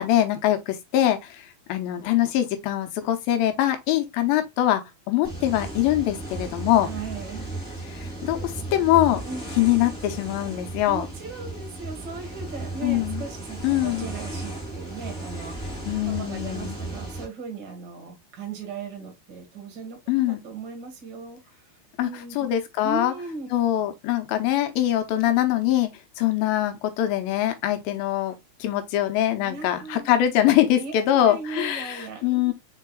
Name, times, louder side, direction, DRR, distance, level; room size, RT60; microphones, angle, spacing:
voice 1, 0.0-6.9 7.9-9.2 9.6-11.1 12.8-13.2 13.6-14.1 15.9-16.8 20.1-20.4 22.0-22.1 22.4-23.1 23.5-25.9 26.2-28.4 28.6-32.5, left 12 dB, 75° left, 2.4 m, -23 dB
sound 1, 5.2-17.3, right 2 dB, ahead, 2.2 m, -35 dB
voice 2, 6.8-7.5 9.2-9.5 10.8-13.6 13.8-15.8 16.2-20.0 20.3-21.4 22.0-22.3 22.8-23.5 29.3-30.1 30.7-32.5, right 4 dB, 50° right, 1.3 m, -37 dB
4.9 x 4.6 x 2.3 m
omnidirectional pair, 4.5 m